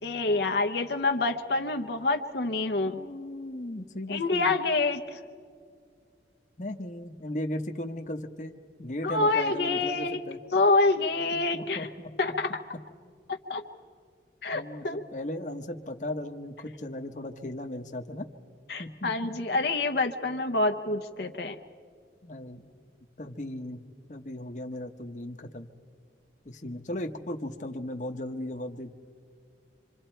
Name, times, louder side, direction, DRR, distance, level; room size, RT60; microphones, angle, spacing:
voice 1, 0.0-3.0 4.1-5.2 9.0-10.2 10.5-11.9 12.2-12.6 13.3-13.6 14.4-15.0 18.7-21.6, left 3 dB, 65° left, 5 dB, 0.8 m, -27 dB
voice 2, 2.8-4.6 6.6-10.4 11.3-12.1 14.5-18.3 18.8-19.3 22.2-22.8 23.2-23.8 24.1-25.7 26.4-28.9, left 1 dB, 45° left, 5 dB, 1.0 m, -37 dB
26.5 x 26.0 x 4.5 m, 2.1 s
head